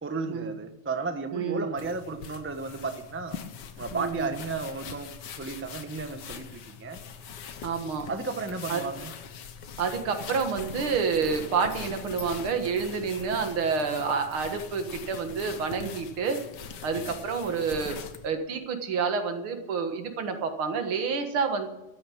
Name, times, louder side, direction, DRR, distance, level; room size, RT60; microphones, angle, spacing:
voice 1, 0.0-3.4 3.8-5.1 5.4-7.0 8.1-9.1, right 4 dB, 10° right, 7 dB, 0.6 m, -33 dB
voice 2, 1.3-1.7 3.9-4.3 7.6-8.1 8.7-8.8 9.8-16.4 16.8-18.0 18.2-21.7, right 5 dB, 80° right, 6 dB, 2.4 m, -29 dB
sound 1, 1.8-18.3, left 7 dB, 60° left, 1.6 m, -42 dB
13.5 x 9.4 x 8.5 m, 1.0 s
omnidirectional pair, 2.3 m